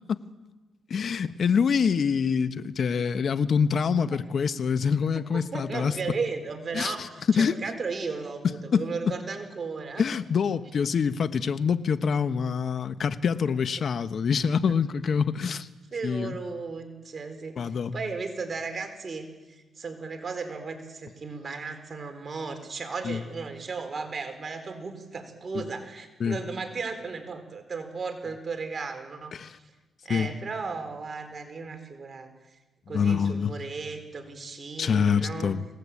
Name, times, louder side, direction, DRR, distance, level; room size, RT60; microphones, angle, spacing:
voice 1, 0.9-5.9 6.7-7.6 8.7-8.9 10.0-15.7 16.0-16.4 17.6-17.9 23.0-23.2 25.5-25.6 26.2-26.4 29.3-29.5 30.1-30.3 32.9-33.5 34.8-35.6, left 6 dB, 50° left, 11 dB, 1.3 m, -25 dB
voice 2, 5.3-10.0 15.9-17.6 17.9-19.3 19.8-29.3 30.0-32.3 32.9-35.5, right 4 dB, 35° right, 7 dB, 4.2 m, -35 dB
27.0 x 18.5 x 8.6 m, 1.2 s
cardioid pair, 90°, 0 cm